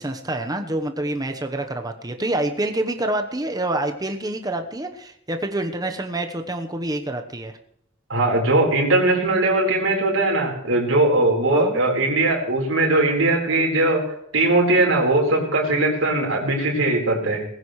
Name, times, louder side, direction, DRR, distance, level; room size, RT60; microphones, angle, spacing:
voice 1, 0.0-7.5 11.5-11.8, right 1 dB, 20° right, 6 dB, 1.1 m, -27 dB
voice 2, 8.1-14.0 14.3-17.5, right 2 dB, 80° right, -1 dB, 4.2 m, -20 dB
19.0 x 15.5 x 3.2 m, 0.74 s
head